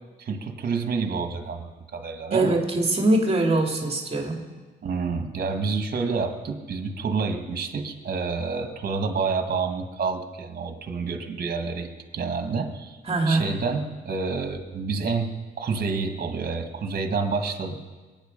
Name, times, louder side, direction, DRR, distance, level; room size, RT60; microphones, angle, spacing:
voice 1, 0.2-2.6 4.8-13.0 13.3-17.7, right 4 dB, 50° right, 5 dB, 1.9 m, -28 dB
voice 2, 2.3-4.4 13.1-13.5, right 2 dB, 30° right, 1 dB, 2.5 m, -22 dB
23.0 x 9.4 x 5.4 m, 1.4 s
cardioid pair, 90°, 20 cm